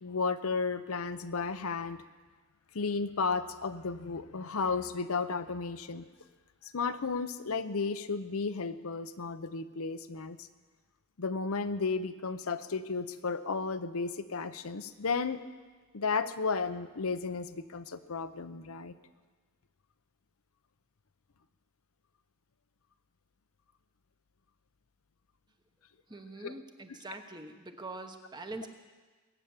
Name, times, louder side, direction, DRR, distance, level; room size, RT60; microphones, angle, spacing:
voice 1, 0.0-2.0 2.7-6.0 6.6-10.5 11.2-15.4 15.9-18.9 26.4-26.5, left 4 dB, 75° left, 10 dB, 0.8 m, -33 dB
voice 2, 26.1-28.7, right 2 dB, 20° right, 6 dB, 1.0 m, -44 dB
21.5 x 9.0 x 7.3 m, 1.4 s
head